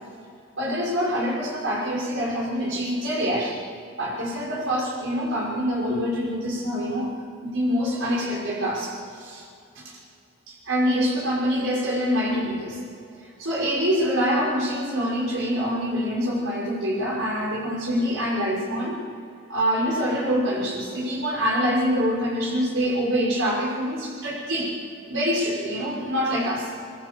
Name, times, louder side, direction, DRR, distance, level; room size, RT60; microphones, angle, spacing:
voice 1, 0.6-3.6 4.0-7.1 7.4-9.4 9.8-9.9 10.5-12.8 13.4-19.0 19.5-24.7 25.1-26.7, equal, 65° right, -4 dB, 5.9 m, -25 dB
25.0 x 22.5 x 6.9 m, 2.5 s
head